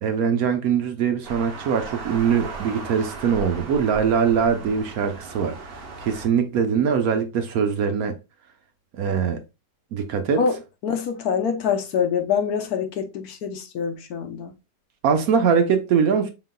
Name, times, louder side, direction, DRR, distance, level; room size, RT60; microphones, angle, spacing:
voice 1, 0.0-5.6 6.0-8.2 8.9-9.4 9.9-10.4 15.0-16.3, right 6 dB, 65° right, 1.0 m, -22 dB
sound 1, 1.2-6.3, right 4 dB, 45° right, 0.9 m, -37 dB
voice 2, 10.8-14.5, left 6 dB, 70° left, 1.2 m, -25 dB
5.4 x 3.9 x 2.2 m
omnidirectional pair, 1.8 m